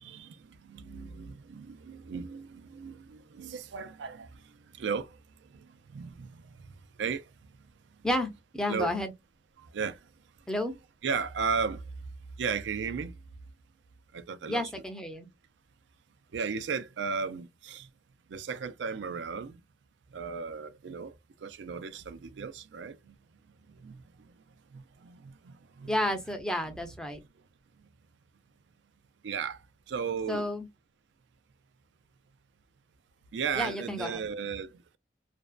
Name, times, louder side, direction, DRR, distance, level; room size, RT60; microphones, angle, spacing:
voice 1, 0.0-4.3 4.8-5.2 5.9-6.4 7.0-7.2 8.7-9.0 9.7-10.0 11.0-11.8 12.4-13.1 14.1-14.7 16.3-17.9 18.3-19.6 20.1-21.1 21.4-23.1 23.8-24.0 24.7-26.0 29.2-29.6 29.9-30.5 33.3-34.7, right 5 dB, 85° right, 0.4 m, -35 dB
voice 2, 8.0-9.1 10.5-10.7 14.5-15.3 25.9-27.2 30.3-30.7 33.5-34.2, left 1 dB, 5° left, 0.4 m, -31 dB
2.5 x 2.1 x 2.3 m
head